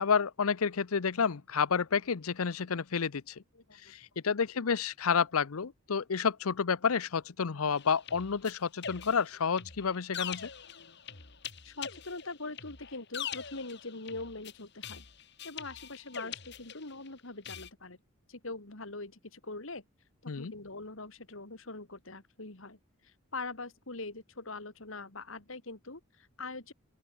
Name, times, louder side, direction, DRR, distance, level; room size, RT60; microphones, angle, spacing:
voice 1, 0.0-3.3 3.8-10.5 20.3-20.5, left 6 dB, 85° left, 0.7 m, -30 dB
voice 2, 3.5-3.9 10.7-11.0 11.6-15.0 15.4-18.0 18.3-19.8 20.2-26.7, left 3 dB, 70° left, 2.7 m, -43 dB
sound 1, 7.8-17.1 17.4-17.7, left 8 dB, 50° left, 3.5 m, -43 dB
open air
head